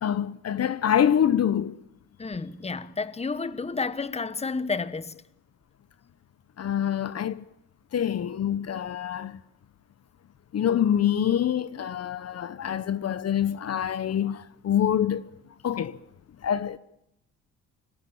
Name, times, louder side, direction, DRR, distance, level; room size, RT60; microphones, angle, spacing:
voice 1, 0.0-1.8 6.6-7.5 7.9-9.4 10.5-15.3 15.6-16.0 16.4-16.8, left 9 dB, 55° left, 1.2 m, -25 dB
voice 2, 2.2-5.2, left 4 dB, 20° left, 1.3 m, -31 dB
25.5 x 21.5 x 9.0 m
cardioid pair, 90°, 30 cm